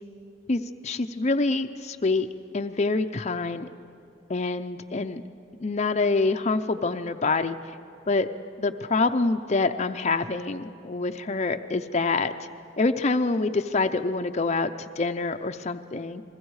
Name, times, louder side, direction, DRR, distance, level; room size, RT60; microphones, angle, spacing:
voice 1, 0.5-2.3 2.5-3.7 4.3-5.2 5.6-7.6 8.1-8.3 8.6-12.3 12.8-16.2, left 3 dB, 35° left, 7 dB, 0.6 m, -26 dB
29.5 x 21.5 x 4.8 m, 2.6 s
head